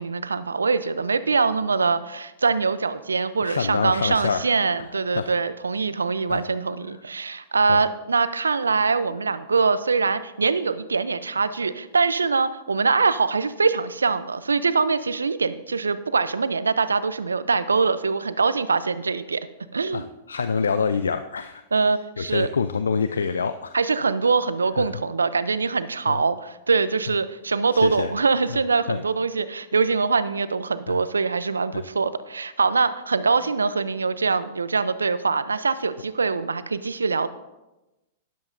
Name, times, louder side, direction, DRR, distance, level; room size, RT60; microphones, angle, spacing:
voice 1, 0.0-19.4 19.7-20.1 21.7-22.5 23.7-37.3, right 4 dB, 85° right, 14 dB, 0.5 m, -23 dB
voice 2, 3.4-4.4 5.1-5.4 6.3-6.4 7.7-7.8 19.9-21.6 22.2-23.8 24.8-24.9 26.1-26.2 27.7-28.1 28.5-28.6 28.9-29.0 30.9-31.0 31.7-31.8, left 5 dB, 80° left, 11 dB, 0.4 m, -26 dB
12.5 x 10.5 x 2.6 m, 1.0 s
figure-of-eight pair, 105°, 0 cm